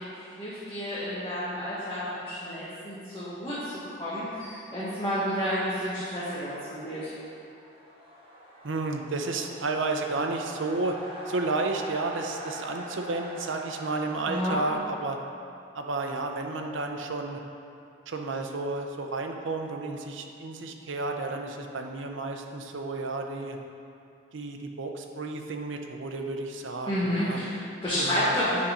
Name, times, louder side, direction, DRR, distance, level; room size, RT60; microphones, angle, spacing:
voice 1, 0.0-7.1 14.3-14.6 26.9-28.6, equal, 20° left, -12 dB, 1.4 m, -30 dB
sound 1, 6.8-14.3, equal, 25° right, 1.2 m, -43 dB
voice 2, 8.6-11.0 11.3-15.2 15.7-17.4 18.1-23.6 24.3-27.4 28.0-28.3, right 3 dB, 70° right, 3 dB, 0.6 m, -32 dB
8.4 x 4.2 x 5.1 m, 2.5 s
head